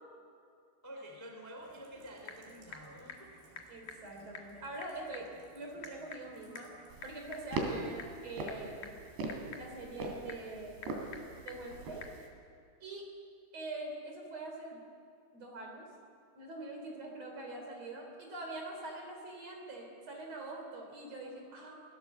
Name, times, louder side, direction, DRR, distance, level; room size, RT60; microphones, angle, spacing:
voice 1, 0.8-3.3 17.0-17.3, equal, 5° left, 2 dB, 1.4 m, -49 dB
Rain, 1.6-7.1, right 2 dB, 80° right, 6.3 m, -61 dB
Typing / Telephone, 1.7-12.2, left 5 dB, 55° left, 2.3 m, -52 dB
voice 2, 3.7-5.3 5.5-6.7 7.0-9.0 9.5-10.8 11.4-12.0 12.8-13.0 13.5-14.8 15.3-15.9 16.3-21.8, right 2 dB, 35° right, 1 dB, 4.0 m, -44 dB
sound 1, 6.9-12.3, right 2 dB, 65° right, 4.7 m, -41 dB
25.0 x 16.5 x 7.3 m, 2.4 s
omnidirectional pair, 5.4 m